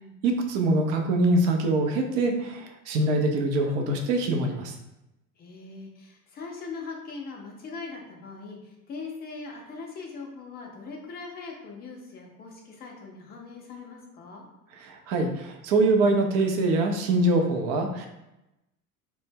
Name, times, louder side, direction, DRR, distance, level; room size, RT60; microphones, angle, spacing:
voice 1, 0.2-4.8 14.8-18.1, right 2 dB, 35° right, 3 dB, 0.4 m, -24 dB
voice 2, 5.4-14.4, left 4 dB, 20° left, 0 dB, 0.5 m, -41 dB
2.1 x 2.0 x 3.3 m, 0.93 s
figure-of-eight pair, 75°, 46 cm